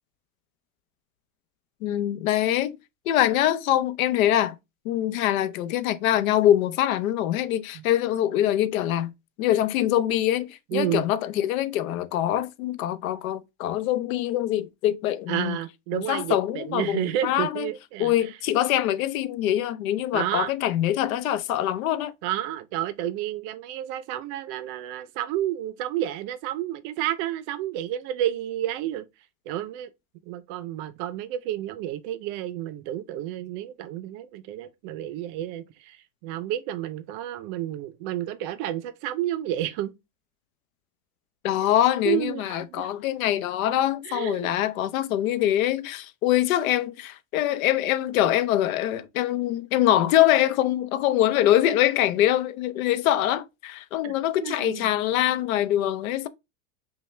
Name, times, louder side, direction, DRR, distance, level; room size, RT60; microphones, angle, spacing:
voice 1, 1.8-2.8 3.1-4.5 4.8-9.1 9.4-15.6 15.9-17.7 18.0-22.1 41.4-56.3, left 12 dB, 90° left, 0.7 m, -24 dB
voice 2, 10.7-11.1 15.3-18.4 20.1-20.5 22.2-29.1 29.5-29.9 30.3-39.9 42.0-42.9 44.0-44.5 54.0-54.1 54.4-54.9, right 12 dB, 40° right, 0.5 m, -30 dB
5.5 x 2.2 x 3.2 m
supercardioid pair, 160°, 40 cm